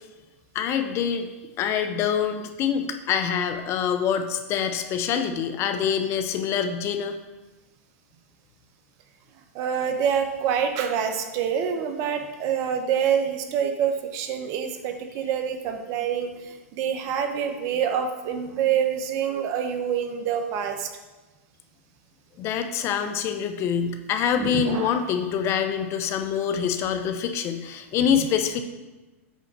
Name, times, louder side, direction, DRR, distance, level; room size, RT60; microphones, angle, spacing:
voice 1, 0.5-1.3 1.6-7.2 22.4-28.6, left 8 dB, 35° left, 8 dB, 0.7 m, -25 dB
voice 2, 9.5-20.9 24.4-25.0, right 8 dB, 45° right, 6 dB, 1.0 m, -26 dB
8.2 x 3.8 x 6.0 m, 1.2 s
hypercardioid pair, 115°, 8 cm